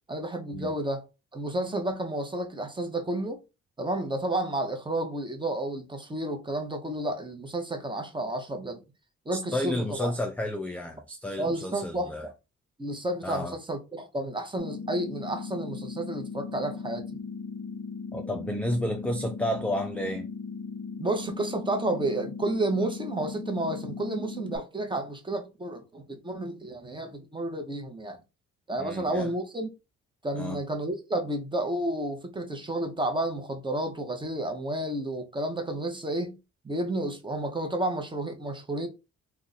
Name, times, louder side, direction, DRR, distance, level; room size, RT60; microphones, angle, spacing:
voice 1, 0.1-1.1 1.3-3.4 3.8-8.8 9.3-10.1 11.4-12.3 12.8-17.0 21.0-28.2 28.7-29.7 30.2-36.4 36.6-38.9, right 1 dB, 15° right, 0.8 m, -31 dB
voice 2, 9.3-12.3 13.2-13.6 18.1-20.3 28.8-29.3 30.3-30.6, left 1 dB, 5° left, 0.4 m, -31 dB
sound 1, 14.6-24.6, left 5 dB, 45° left, 0.7 m, -38 dB
2.5 x 2.3 x 3.9 m
cardioid pair, 90°, 30 cm